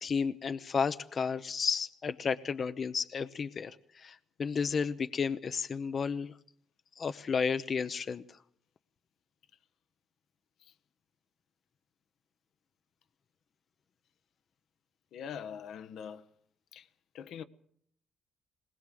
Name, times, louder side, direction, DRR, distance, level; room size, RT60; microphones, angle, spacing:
voice 1, 0.0-6.3 7.0-8.4, left 6 dB, 45° left, 0.8 m, -32 dB
voice 2, 15.1-16.3 16.7-16.9 17.1-17.4, left 8 dB, 75° left, 1.3 m, -43 dB
20.5 x 20.0 x 7.7 m
cardioid pair, 90°, 0 cm